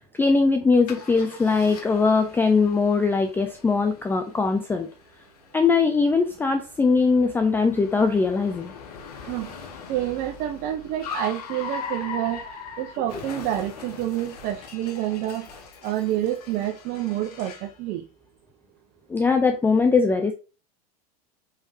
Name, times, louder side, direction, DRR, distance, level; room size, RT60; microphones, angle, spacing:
voice 1, 0.2-4.9 5.5-8.7 13.1-13.2 19.1-20.3, left 4 dB, 10° left, 7 dB, 0.4 m, -21 dB
Car, 0.9-17.8, left 5 dB, 75° left, 1.0 m, -41 dB
voice 2, 9.9-12.4 12.8-15.5 15.8-18.0, right 13 dB, 50° right, 4 dB, 0.6 m, -28 dB
4.7 x 3.5 x 2.6 m, 0.32 s
hypercardioid pair, 95°, 20 cm